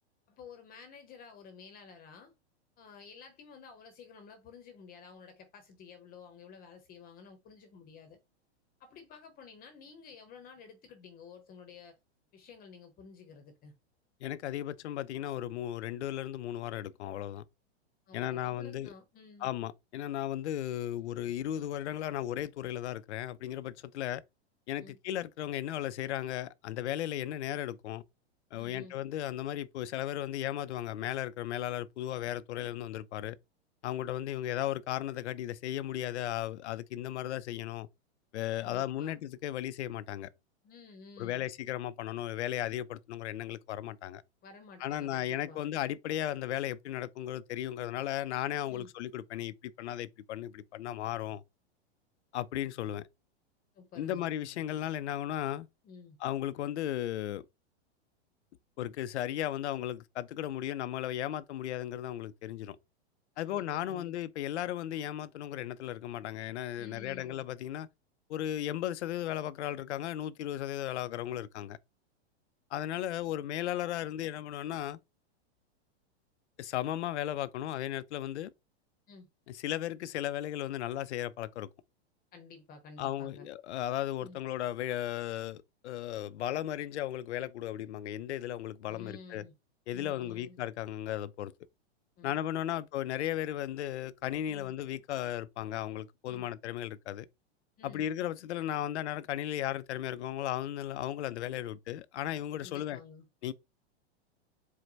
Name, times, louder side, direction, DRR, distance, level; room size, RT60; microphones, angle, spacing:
voice 1, 0.3-2.3 2.8-8.2 8.8-12.0 12.3-13.7 18.1-19.5 24.8-25.0 28.5-29.0 38.6-39.2 40.6-41.5 44.4-45.6 48.7-48.9 53.7-54.2 55.8-56.2 63.3-64.1 66.8-67.4 79.1-79.3 82.3-83.5 84.2-84.4 88.9-89.5 89.9-90.6 92.2-92.3 92.7-92.8 94.5-94.7 96.3-96.5 97.8-98.1 102.6-103.2, left 5 dB, 25° left, 0.8 m, -52 dB
voice 2, 14.2-17.4 18.1-18.9 19.4-24.2 24.7-28.0 28.5-33.4 33.8-37.9 38.3-40.3 41.2-44.2 44.8-51.4 52.3-53.1 54.0-55.7 56.2-57.4 58.8-62.8 63.4-67.9 68.3-71.8 72.7-75.0 76.6-78.5 79.5-81.7 83.0-89.4 89.9-91.5 92.2-97.3 97.8-103.0 103.4-103.5, left 12 dB, 80° left, 0.5 m, -35 dB
4.6 x 2.1 x 3.9 m
hypercardioid pair, 130°, 33 cm